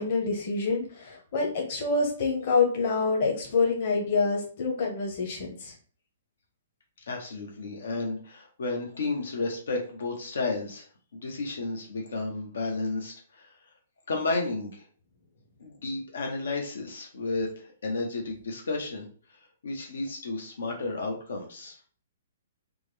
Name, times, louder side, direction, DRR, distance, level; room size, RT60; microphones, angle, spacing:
voice 1, 0.0-5.7, left 4 dB, 45° left, -1 dB, 1.0 m, -27 dB
voice 2, 7.1-10.8 11.1-13.5 14.1-14.8 15.6-19.1 19.6-21.8, left 3 dB, 85° left, 1 dB, 0.9 m, -32 dB
3.6 x 2.1 x 3.2 m, 0.43 s
hypercardioid pair, 160°, 0 cm